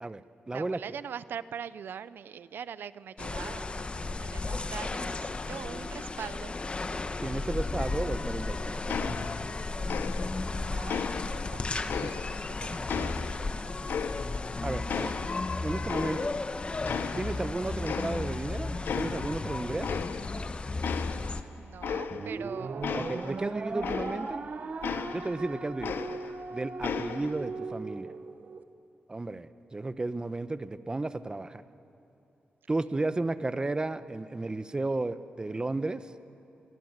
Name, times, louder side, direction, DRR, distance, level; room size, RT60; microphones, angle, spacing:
voice 1, 0.0-0.8 7.2-9.3 12.0-12.2 14.0-14.1 14.6-15.1 15.6-16.3 17.1-20.0 22.9-24.4 25.1-26.0 26.5-28.1 29.1-31.6 32.7-36.1, right 2 dB, 25° right, 12 dB, 1.0 m, -33 dB
voice 2, 0.5-6.6 10.5-11.6 12.3-13.7 21.6-23.1, right 8 dB, 80° right, 16 dB, 0.6 m, -42 dB
sound 1, 3.2-21.4, left 3 dB, 30° left, 1.1 m, -34 dB
sound 2, 8.9-9.6 9.9-10.5 10.9-12.5 12.9-14.5 14.9-16.5 16.9-17.5 17.9-18.5 18.9-19.4 19.8-20.5 20.8-24.4 24.8-26.5 26.8-27.4, left 7 dB, 80° left, 1.0 m, -36 dB
sound 3, 22.1-28.6, right 4 dB, 50° right, 1.3 m, -38 dB
28.0 x 23.5 x 8.1 m, 2.8 s
cardioid pair, 95°, 3 cm